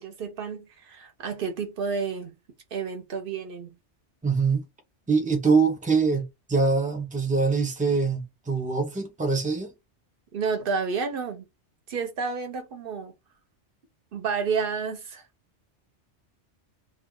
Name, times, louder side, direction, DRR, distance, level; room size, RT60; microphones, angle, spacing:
voice 1, 0.0-2.3 2.7-3.7 10.3-11.4 11.9-13.1 14.1-15.2, right 5 dB, 55° right, 0.9 m, -30 dB
voice 2, 4.2-4.7 5.1-9.7, right 4 dB, 10° right, 0.4 m, -24 dB
2.4 x 2.3 x 3.6 m
omnidirectional pair, 1.2 m